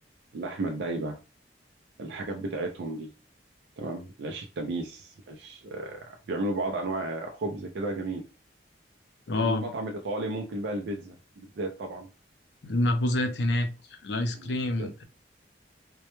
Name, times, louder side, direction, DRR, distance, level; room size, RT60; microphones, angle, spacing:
voice 1, 0.3-1.2 2.0-3.1 3.8-8.3 9.3-12.1 14.3-14.5 14.8-14.9, right 2 dB, 70° right, 0.4 m, -33 dB
voice 2, 9.3-9.7 12.6-13.7 14.0-15.0, left 1 dB, 70° left, 0.5 m, -27 dB
2.1 x 2.1 x 2.9 m
head